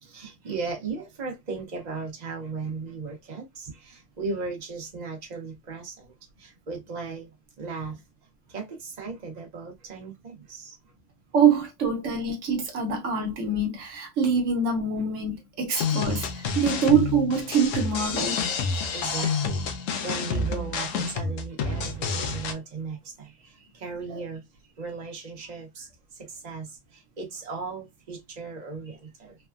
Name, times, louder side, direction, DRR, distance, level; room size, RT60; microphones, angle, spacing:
voice 1, 0.0-6.1 6.4-7.3 7.6-8.0 8.5-10.7 18.9-19.5 19.9-24.4 24.8-25.9 26.2-26.7 27.2-29.3, right 4 dB, 35° right, 0.9 m, -36 dB
voice 2, 11.3-18.4 19.2-19.4 24.1-24.2, right 5 dB, 75° right, 1.1 m, -25 dB
sound 1, 15.7-22.5, left 5 dB, 85° left, 1.0 m, -29 dB
3.3 x 2.1 x 2.3 m
omnidirectional pair, 1.3 m